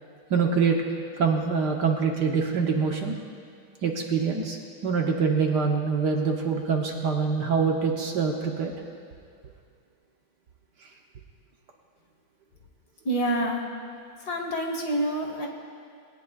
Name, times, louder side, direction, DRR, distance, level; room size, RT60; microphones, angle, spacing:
voice 1, 0.3-0.8 1.2-3.2 3.8-4.6 4.8-8.7, right 5 dB, 60° right, 1 dB, 1.5 m, -25 dB
voice 2, 13.0-13.7 14.2-15.5, right 1 dB, 50° left, 2 dB, 1.9 m, -27 dB
21.0 x 17.5 x 2.4 m, 2.2 s
omnidirectional pair, 2.3 m